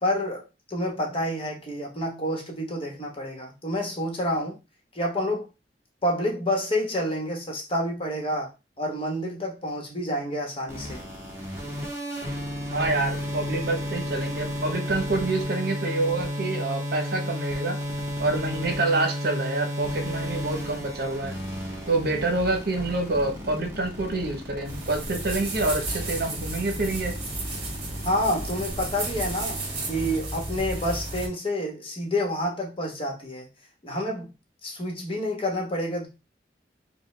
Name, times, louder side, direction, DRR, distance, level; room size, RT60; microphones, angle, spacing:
voice 1, 0.0-4.6 4.9-5.5 6.0-8.5 8.8-11.0 28.0-29.6 29.9-33.5 33.8-34.3 34.6-36.1, left 1 dB, 30° left, 1.1 m, -28 dB
sound 1, 10.7-30.2, equal, 15° right, 1.2 m, -33 dB
voice 2, 12.7-17.8 18.2-21.4 21.9-27.1, right 2 dB, 60° right, 0.9 m, -27 dB
sound 2, 24.6-31.3, right 2 dB, 35° right, 1.5 m, -33 dB
5.2 x 2.2 x 3.3 m
head